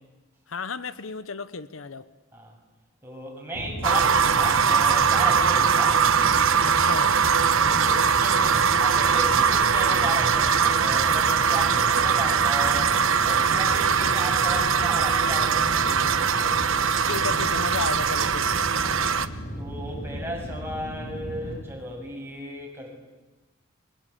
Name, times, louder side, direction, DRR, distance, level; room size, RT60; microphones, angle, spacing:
voice 1, 0.5-2.1 6.6-7.1 17.0-18.7, left 4 dB, 70° left, 14 dB, 0.9 m, -33 dB
voice 2, 3.0-6.0 7.6-16.6 18.8-19.0 19.6-23.0, right 1 dB, 10° right, -1 dB, 7.4 m, -35 dB
sound 1, 3.5-21.6, equal, 45° left, 3.1 m, -35 dB
sound 2, 3.8-19.3, right 6 dB, 75° right, 1.1 m, -21 dB
30.0 x 23.5 x 8.6 m, 1.2 s
head